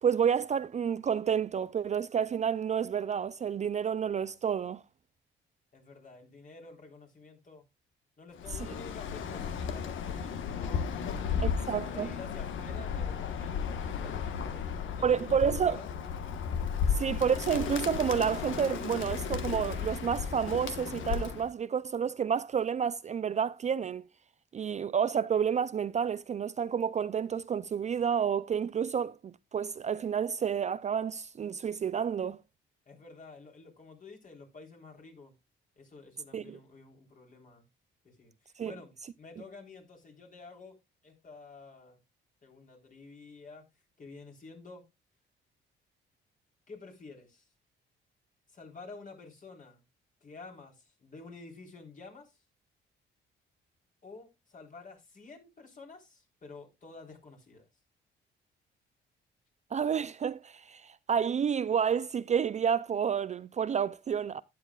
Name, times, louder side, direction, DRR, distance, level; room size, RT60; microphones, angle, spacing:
voice 1, 0.0-4.8 11.4-12.1 15.0-15.8 16.9-24.0 24.5-32.4 36.3-36.6 38.6-38.7 59.7-64.4, right 7 dB, 35° right, 0.4 m, -30 dB
voice 2, 5.7-7.6 8.2-15.9 32.9-35.3 35.8-37.6 38.0-40.8 41.0-42.0 42.4-43.6 44.0-44.8 46.7-47.5 48.5-49.8 50.2-52.4 54.0-57.7, left 3 dB, 40° left, 3.7 m, -50 dB
Bird, 8.4-21.5, left 7 dB, 75° left, 1.3 m, -34 dB
12.0 x 9.4 x 2.3 m
cardioid pair, 90°, 20 cm